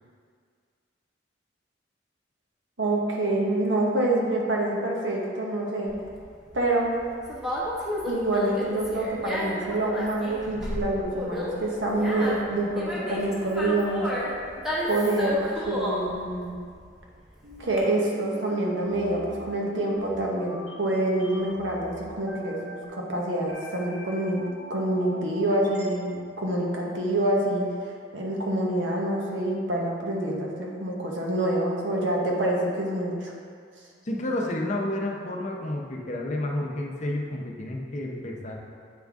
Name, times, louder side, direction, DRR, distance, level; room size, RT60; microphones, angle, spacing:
voice 1, 2.8-5.9 6.5-7.0 8.1-14.1 14.9-16.5 17.6-24.4 24.7-27.6 28.1-33.3, right 1 dB, 85° right, -2 dB, 1.0 m, -26 dB
Conversation, 5.9-17.8, left 1 dB, 5° right, 1.0 m, -32 dB
sound 1, 17.4-25.9, left 1 dB, 60° right, 1.2 m, -43 dB
voice 2, 34.0-38.6, left 1 dB, 40° left, 0 dB, 0.6 m, -30 dB
8.0 x 3.9 x 3.5 m, 2.1 s
head